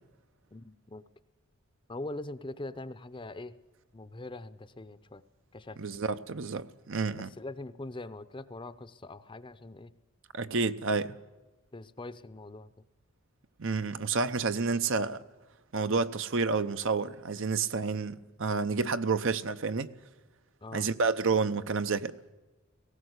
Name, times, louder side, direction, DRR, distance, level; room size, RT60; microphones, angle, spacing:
voice 1, 0.5-1.0 1.9-3.6 3.9-5.2 5.5-5.8 7.2-9.9 11.7-12.7 20.6-20.9, left 2 dB, 25° left, 0.7 m, -42 dB
voice 2, 5.8-7.3 10.3-11.2 13.6-15.2 15.7-19.9 20.7-22.1, right 4 dB, 60° right, 0.8 m, -29 dB
19.0 x 17.0 x 8.1 m
head